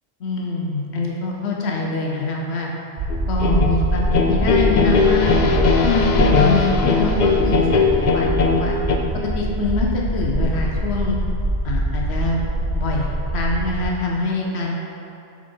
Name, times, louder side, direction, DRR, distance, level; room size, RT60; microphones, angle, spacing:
voice 1, 0.2-2.7 3.3-5.3 5.8-8.8 9.2-11.2 11.6-12.4 12.7-14.8, left 3 dB, 80° left, -1 dB, 1.0 m, -24 dB
sound 1, 3.0-13.9, right 1 dB, 60° right, 0.9 m, -23 dB
sound 2, 3.1-9.0, left 4 dB, 50° left, 0.6 m, -19 dB
7.2 x 4.2 x 4.5 m, 2.7 s
omnidirectional pair, 1.1 m